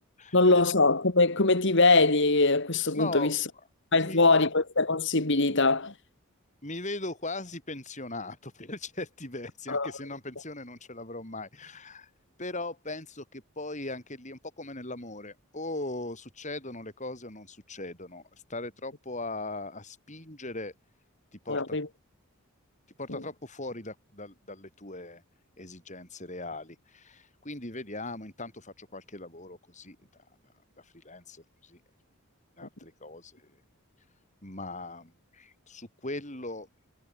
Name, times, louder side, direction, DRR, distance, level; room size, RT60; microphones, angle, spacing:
voice 1, 0.3-3.4 3.9-5.9 9.7-9.9 21.5-21.9 23.1-23.2, left 3 dB, 55° left, 2.2 m, -22 dB
voice 2, 3.0-3.4 3.9-4.5 6.6-12.1 12.4-20.7 21.3-21.8 23.0-25.2 25.6-30.0 30.8-31.8 32.6-33.5 34.4-36.7, left 2 dB, 35° left, 6.9 m, -39 dB
head